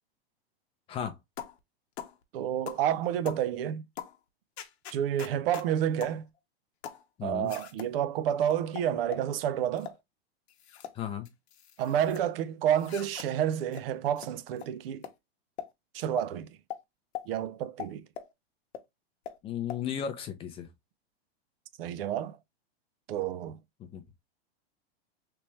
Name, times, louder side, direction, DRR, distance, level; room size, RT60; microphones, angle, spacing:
sound 1, 1.4-1.6 2.0-2.2 2.7-2.9 3.3-3.5 4.0-4.2 4.6-5.7 6.0-6.2 6.8-7.0 7.5-7.9 8.5-9.3 9.8-10.0 10.5-11.0 11.3-12.2 12.8-13.3 13.7-13.8 14.2-14.3 14.6-14.7 15.0-15.1 15.6-15.7 16.2-16.3 16.7-16.8 17.2-17.3 17.8-18.3 18.7-18.8 19.3-19.4 19.7-19.8, left 10 dB, 85° left, 0.8 m, -41 dB
voice 1, 2.3-3.8 4.9-6.3 7.2-9.9 11.8-15.0 15.9-16.6 17.3-18.0 21.8-22.4 23.1-23.6, right 10 dB, 65° right, 0.5 m, -29 dB
voice 2, 7.2-7.5 10.9-11.3 19.4-20.7 23.8-24.0, left 8 dB, 20° left, 0.5 m, -35 dB
3.4 x 3.0 x 2.9 m
supercardioid pair, 150°, 31 cm